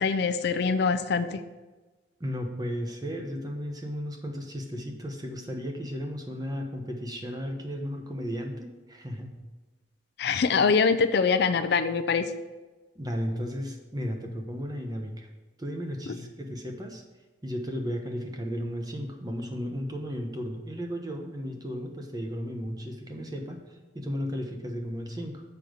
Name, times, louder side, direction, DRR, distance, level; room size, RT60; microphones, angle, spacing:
voice 1, 0.0-1.4 10.2-12.2 16.1-16.2, left 5 dB, 60° left, 10 dB, 0.4 m, -24 dB
voice 2, 2.2-9.4 12.9-15.3 15.6-17.0 17.4-23.6 23.9-25.4, equal, 20° right, 3 dB, 1.0 m, -34 dB
7.0 x 5.2 x 6.2 m, 1.2 s
head